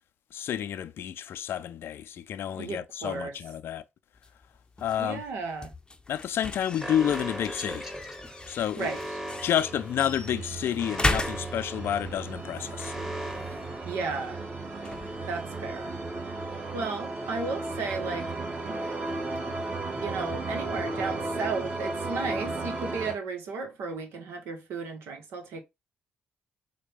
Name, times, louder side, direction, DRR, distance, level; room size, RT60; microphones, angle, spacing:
voice 1, 0.3-3.8 4.8-5.2 6.1-7.9 8.5-8.9 9.4-13.0, left 10 dB, 70° left, 0.4 m, -30 dB
voice 2, 2.5-3.3 5.0-5.7 8.8-9.0 13.5-14.4 15.2-15.9 16.2-16.3 16.7-18.3 18.6-18.8 20.0-25.6, right 4 dB, 80° right, 0.9 m, -34 dB
sound 1, 4.1-16.9, left 2 dB, 20° left, 0.6 m, -38 dB
Alarm, 6.8-14.6, equal, 15° right, 1.2 m, -39 dB
sound 2, 8.8-23.1, right 2 dB, 40° right, 1.4 m, -35 dB
4.0 x 2.2 x 3.4 m
supercardioid pair, 55°, 4 cm